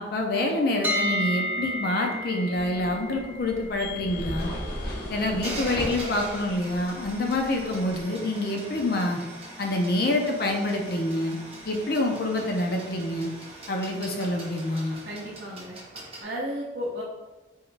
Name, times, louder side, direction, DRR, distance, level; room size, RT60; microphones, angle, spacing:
voice 1, 0.0-4.5 5.1-9.2 9.6-11.4 11.7-13.3 13.7-15.0, left 1 dB, 55° left, 1 dB, 0.5 m, -27 dB
sound 1, 0.8-12.8, left 1 dB, 10° right, 0.3 m, -36 dB
sound 2, 2.5-8.0, equal, 70° left, 1.1 m, -38 dB
sound 3, 3.8-16.2, right 1 dB, 30° right, 0.9 m, -42 dB
voice 2, 15.0-15.8 16.2-17.0, equal, 55° right, -5 dB, 0.6 m, -33 dB
3.6 x 3.0 x 3.2 m, 1.2 s
head